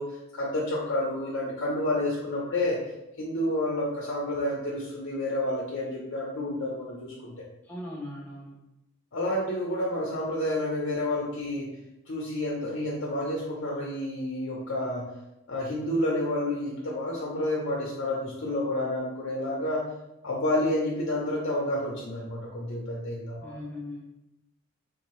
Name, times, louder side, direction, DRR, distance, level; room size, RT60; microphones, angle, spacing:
voice 1, 0.0-2.8 3.2-7.3 9.1-11.7 12.1-15.0 15.5-19.8 20.2-23.5, left 1 dB, 60° left, -3 dB, 0.7 m, -29 dB
voice 2, 7.6-8.6 23.4-24.0, left 1 dB, 10° left, -5 dB, 0.4 m, -39 dB
3.9 x 2.7 x 3.0 m, 0.91 s
head